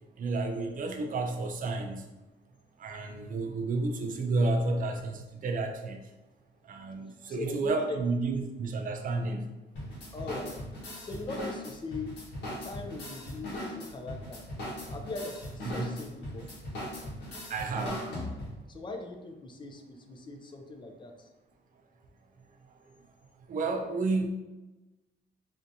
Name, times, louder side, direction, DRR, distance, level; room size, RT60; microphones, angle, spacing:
voice 1, 0.2-2.0 2.8-6.0 6.7-9.5 15.7-15.9 17.5-18.0 23.5-24.3, right 3 dB, 45° right, 4 dB, 0.5 m, -31 dB
voice 2, 7.3-8.0 10.1-10.6 11.0-12.1 12.6-14.4 14.9-16.5 18.7-21.3, left 3 dB, 25° left, 4 dB, 0.4 m, -40 dB
sound 1, 9.7-18.7, left 1 dB, 70° left, 1.2 m, -39 dB
3.4 x 2.8 x 2.6 m, 1.1 s
cardioid pair, 130°, 19 cm